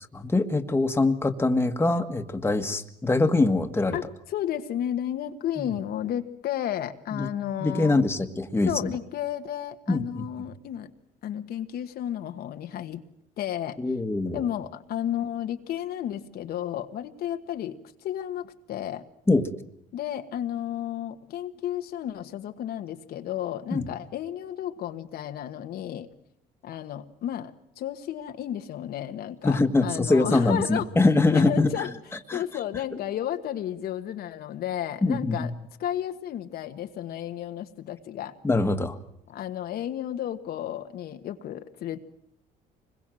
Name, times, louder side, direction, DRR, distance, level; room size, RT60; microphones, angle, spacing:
voice 1, 0.1-4.0 7.1-7.3 7.6-9.0 9.9-10.3 13.8-14.4 19.3-19.5 23.7-23.9 29.4-31.7 32.3-32.4 35.0-35.5 38.4-39.0, left 2 dB, 15° left, 7 dB, 1.7 m, -23 dB
voice 2, 3.9-8.0 8.6-10.9 11.2-13.0 13.4-13.8 14.3-19.0 19.9-26.1 26.6-30.9 31.3-31.9 32.3-35.5 35.8-38.3 39.3-42.0, left 11 dB, 65° left, 7 dB, 1.5 m, -32 dB
25.5 x 21.5 x 7.8 m, 0.73 s
cardioid pair, 110°, 17 cm